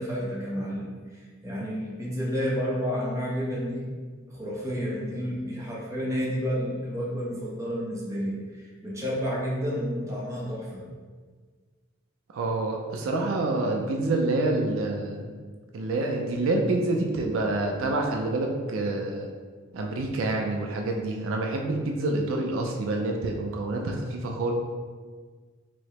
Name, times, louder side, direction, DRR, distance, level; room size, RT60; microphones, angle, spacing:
voice 1, 0.0-3.9 4.3-10.9, equal, 15° right, -5 dB, 0.6 m, -30 dB
voice 2, 12.3-15.3 15.7-19.3 19.7-24.5, right 2 dB, 75° right, 1 dB, 0.4 m, -27 dB
4.6 x 2.0 x 2.9 m, 1.5 s
head